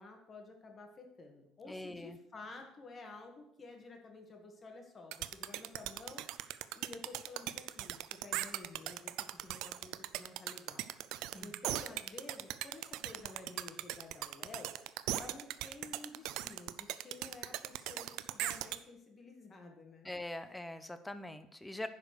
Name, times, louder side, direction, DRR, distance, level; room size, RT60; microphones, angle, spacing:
voice 1, 0.0-6.4 6.7-14.8 15.1-20.1, left 3 dB, 30° left, 3 dB, 2.0 m, -52 dB
voice 2, 1.7-2.2 11.3-11.5 20.0-21.9, left 1 dB, 10° left, 11 dB, 0.8 m, -43 dB
sound 1, 5.1-18.8, right 15 dB, 75° right, 0.5 m, -39 dB
10.5 x 4.9 x 6.7 m, 0.80 s
cardioid pair, 120°, 0 cm